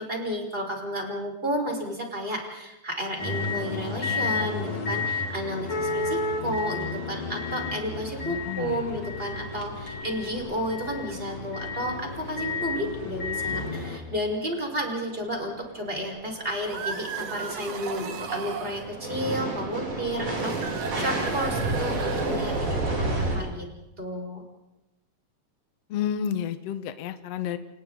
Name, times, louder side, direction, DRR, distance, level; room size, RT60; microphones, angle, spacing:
voice 1, 0.0-23.7 24.0-24.4, equal, 15° right, 1 dB, 5.1 m, -32 dB
sound 1, 3.2-14.0, left 3 dB, 35° left, 3.4 m, -31 dB
voice 2, 8.2-8.8 25.9-27.6, left 9 dB, 60° left, 10 dB, 1.9 m, -31 dB
sound 2, 9.3-9.4 9.7-9.9 10.4-10.5 13.5-13.6 14.1-23.4, right 2 dB, 70° right, 8.8 m, -31 dB
sound 3, 16.5-18.9 20.3-22.7, right 6 dB, 50° right, 2.5 m, -36 dB
29.0 x 29.0 x 4.0 m, 0.97 s
omnidirectional pair, 4.2 m